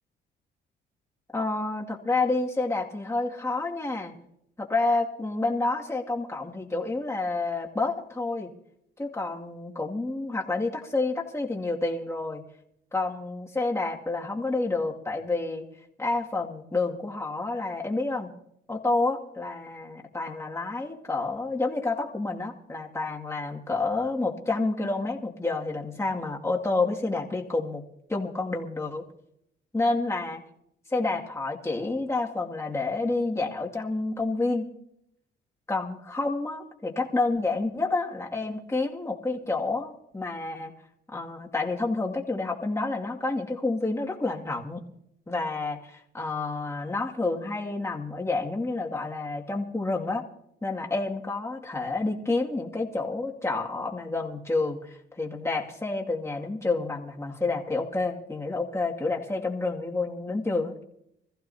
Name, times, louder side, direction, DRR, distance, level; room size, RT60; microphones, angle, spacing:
voice 1, 1.3-4.1 4.6-8.5 9.0-12.4 12.9-15.6 16.0-18.3 18.7-27.8 28.1-29.0 29.7-30.4 30.9-34.7 35.7-40.7 41.1-44.8 45.3-50.3 50.6-60.8, left 3 dB, 15° left, -1 dB, 2.3 m, -29 dB
25.5 x 15.0 x 2.8 m, 0.76 s
cardioid pair, 90°, 20 cm